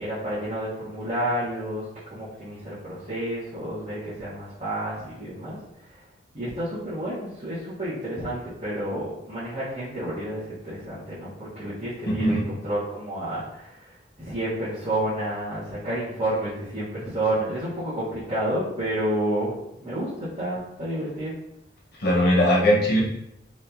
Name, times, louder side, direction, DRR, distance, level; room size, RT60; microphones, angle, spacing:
voice 1, 0.0-6.0 6.3-13.9 14.2-19.5 19.8-21.3, right 1 dB, 35° right, -12 dB, 1.4 m, -30 dB
voice 2, 12.1-12.4 22.0-23.0, equal, 60° left, -4 dB, 1.2 m, -20 dB
5.1 x 2.7 x 2.7 m, 0.80 s
head